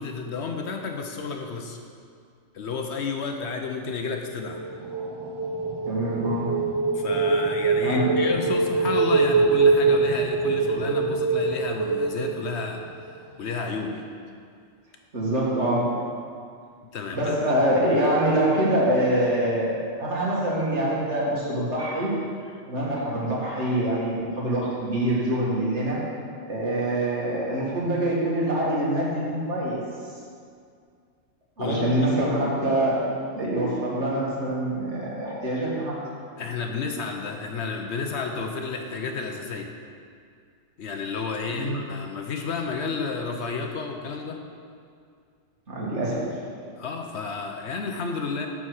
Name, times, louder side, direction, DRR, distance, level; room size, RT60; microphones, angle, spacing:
voice 1, 0.0-1.8 2.5-4.6 6.9-12.8 13.4-14.0 16.9-17.4 31.6-31.9 36.4-39.7 40.8-44.4 46.7-48.5, left 4 dB, 60° left, 3 dB, 1.0 m, -31 dB
sound 1, 4.3-13.2, right 4 dB, 40° right, 0.3 m, -24 dB
voice 2, 5.8-6.6 7.8-8.2 15.1-16.0 17.1-22.1 22.7-26.0 26.5-29.8 31.6-36.0 41.5-41.8 45.7-46.4, right 1 dB, 60° right, -5 dB, 2.2 m, -25 dB
9.8 x 4.7 x 6.3 m, 2.2 s
omnidirectional pair, 1.3 m